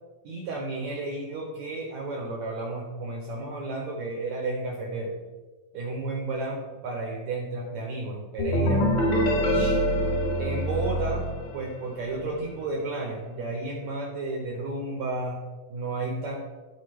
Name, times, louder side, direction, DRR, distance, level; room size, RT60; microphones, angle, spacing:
voice 1, 0.2-5.1 5.7-8.9 9.5-9.9 10.4-16.4, right 2 dB, 70° right, -1 dB, 1.8 m, -32 dB
sound 1, 8.4-12.1, equal, 60° left, 3.3 m, -25 dB
13.5 x 4.4 x 3.2 m, 1.3 s
omnidirectional pair, 4.3 m